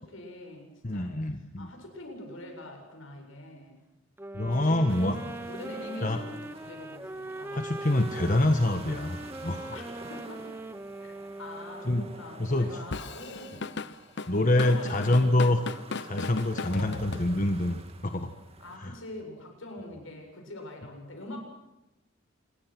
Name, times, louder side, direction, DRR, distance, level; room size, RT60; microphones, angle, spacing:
voice 1, 0.0-3.8 4.5-7.7 9.7-9.8 10.1-10.5 11.0-13.7 14.5-15.5 16.7-17.3 18.6-21.4, left 1 dB, 75° left, 3 dB, 7.6 m, -44 dB
voice 2, 0.8-1.7 4.3-5.1 6.0-6.2 7.5-9.8 11.8-12.1 12.4-12.7 14.3-15.6 16.0-18.3 18.8-18.9, left 1 dB, 40° left, 6 dB, 1.4 m, -26 dB
sound 1, 4.2-12.4, right 2 dB, 10° right, 0.8 m, -41 dB
sound 2, 4.9-18.8, right 2 dB, 30° right, 2.3 m, -48 dB
Drum kit / Drum, 12.9-17.7, left 4 dB, 55° left, 0.8 m, -37 dB
27.0 x 22.5 x 6.1 m, 0.95 s
head